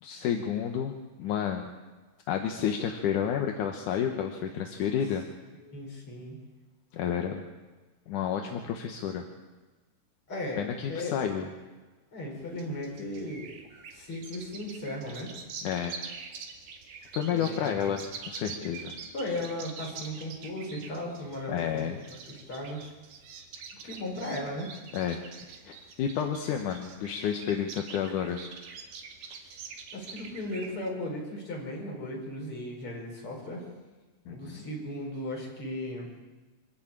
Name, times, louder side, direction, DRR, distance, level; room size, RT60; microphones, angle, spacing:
voice 1, 0.0-1.7 2.3-5.2 6.9-7.4 8.1-9.2 10.6-11.5 15.6-16.0 17.1-18.9 21.5-22.0 24.9-25.2 25.6-28.4 34.3-34.6, left 8 dB, 75° left, 4 dB, 2.7 m, -30 dB
voice 2, 5.6-6.4 10.3-11.2 12.1-13.5 13.9-15.3 17.3-17.8 19.1-22.9 23.8-24.7 29.9-33.6 34.2-36.1, left 1 dB, 40° left, -1 dB, 6.1 m, -36 dB
sound 1, 12.4-30.9, right 5 dB, 90° right, 3.6 m, -45 dB
25.5 x 14.0 x 8.8 m, 1.3 s
omnidirectional pair, 3.7 m